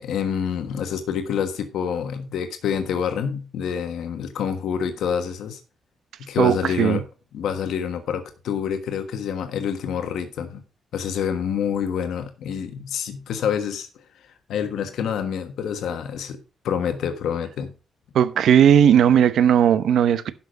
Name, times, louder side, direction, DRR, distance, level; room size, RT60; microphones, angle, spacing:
voice 1, 0.0-5.6 6.2-7.0 7.3-10.6 10.9-13.9 14.1-16.4 16.6-17.7, left 7 dB, 80° left, 1.3 m, -27 dB
voice 2, 6.4-7.0 18.1-20.3, right 9 dB, 70° right, 0.8 m, -17 dB
11.5 x 6.0 x 5.1 m
wide cardioid pair, 160°, 0 cm